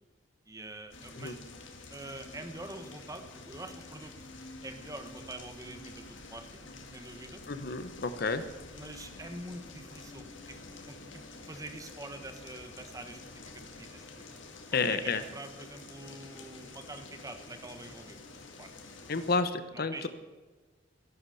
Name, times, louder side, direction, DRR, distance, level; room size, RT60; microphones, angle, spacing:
voice 1, 0.5-1.4 1.9-4.1 4.6-6.5 6.9-7.4 8.7-10.6 10.9-13.2 13.5-14.3 14.7-18.3 18.6-18.7 19.7-20.1, right 2 dB, 20° right, 7 dB, 1.2 m, -45 dB
sound 1, 0.9-19.4, left 3 dB, 85° left, 2.1 m, -48 dB
voice 2, 7.5-8.4 14.7-15.2 19.1-20.1, left 4 dB, 55° left, 11 dB, 0.9 m, -30 dB
13.0 x 11.5 x 7.0 m, 1.3 s
head